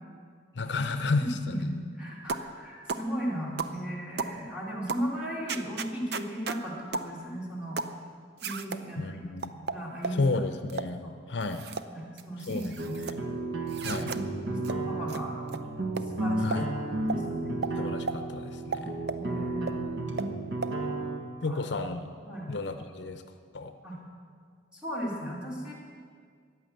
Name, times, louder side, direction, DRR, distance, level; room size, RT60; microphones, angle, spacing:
voice 1, 0.5-1.6 9.0-9.4 10.1-11.6 12.5-13.2 13.8-14.1 16.4-16.7 17.7-19.0 21.4-22.1 22.5-23.2 23.5-23.7, left 3 dB, 70° left, 8 dB, 0.7 m, -32 dB
voice 2, 1.2-7.8 8.4-9.0 9.6-10.2 11.0-11.1 11.9-13.0 14.5-15.3 16.1-16.6 17.1-17.6 19.1-20.2 21.5-21.6 22.3-22.5 23.8-24.0 24.7-25.7, equal, 5° right, -5 dB, 3.2 m, -36 dB
sound 1, 2.3-2.5 2.9-3.1 3.6-3.8 4.2-4.4 4.9-5.1 5.5-6.6 6.9-7.1 7.8-8.0 8.4-8.8 9.4-10.2 10.7-10.9 11.4-11.9 12.2-13.2 13.7-14.2 14.6-14.8 15.1-15.2 15.5-15.6 16.0-16.1 16.5-16.6 17.1-17.2 17.6-17.7 18.1-18.2 18.7-19.2 19.7-19.8 20.2-20.3 20.6-20.7, right 4 dB, 60° right, 0.6 m, -34 dB
sound 2, 12.8-21.2, right 2 dB, 80° right, 1.5 m, -33 dB
14.5 x 10.0 x 7.8 m, 2.1 s
head